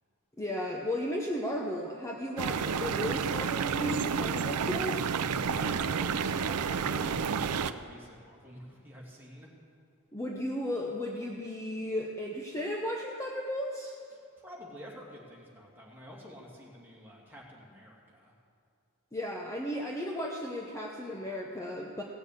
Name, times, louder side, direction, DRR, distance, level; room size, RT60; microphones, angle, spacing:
voice 1, 0.4-5.0 10.1-13.9 19.1-22.0, equal, 15° left, -1 dB, 0.8 m, -35 dB
sound 1, 2.4-7.7, right 6 dB, 90° right, 0.5 m, -30 dB
voice 2, 5.4-9.5 14.1-18.3, equal, 10° right, -4 dB, 2.5 m, -49 dB
16.5 x 7.1 x 8.2 m, 2.4 s
head